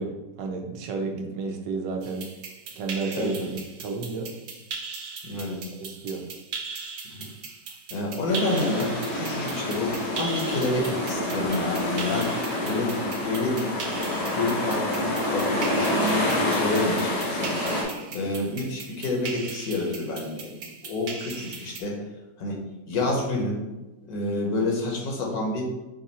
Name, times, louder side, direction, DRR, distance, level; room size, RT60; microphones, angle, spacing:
voice 1, 0.0-2.3 2.7-4.3 5.8-6.2, right 4 dB, 85° right, 3 dB, 1.4 m, -32 dB
sound 1, 2.0-21.8, right 4 dB, 65° right, 0.9 m, -39 dB
voice 2, 3.1-3.5 5.2-5.6 7.1-7.2 7.9-12.3 12.6-13.7 14.1-17.5 18.1-20.6 20.8-22.0 22.4-22.6 22.9-23.6 24.1-25.7, left 2 dB, 65° left, -1 dB, 1.4 m, -28 dB
sound 2, 8.3-17.8, left 1 dB, 90° left, 1.8 m, -27 dB
5.2 x 2.5 x 4.1 m, 1.1 s
omnidirectional pair, 1.8 m